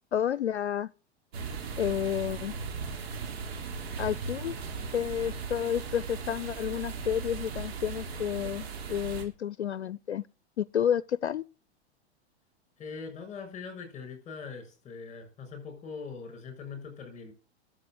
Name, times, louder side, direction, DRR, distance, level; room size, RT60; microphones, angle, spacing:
voice 1, 0.1-0.9 1.8-2.5 4.0-4.6 4.9-10.3 10.6-11.4, left 9 dB, 85° left, 0.5 m, -30 dB
sound 1, 1.3-9.2, right 5 dB, 65° right, 3.8 m, -37 dB
voice 2, 12.8-17.3, left 5 dB, 20° left, 6.9 m, -42 dB
12.5 x 7.8 x 7.8 m
hypercardioid pair, 105°, 33 cm